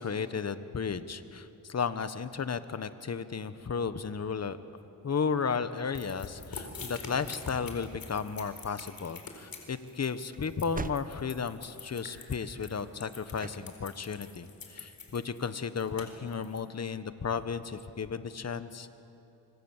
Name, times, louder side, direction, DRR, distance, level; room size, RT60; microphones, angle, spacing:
voice 1, 0.0-4.6 5.0-18.9, left 5 dB, 40° left, 12 dB, 1.3 m, -34 dB
sound 1, 6.0-16.6, left 4 dB, 60° left, 4.3 m, -44 dB
sound 2, 8.2-15.5, right 4 dB, 20° right, 0.8 m, -48 dB
25.0 x 24.5 x 7.4 m, 2.8 s
cardioid pair, 80°, 39 cm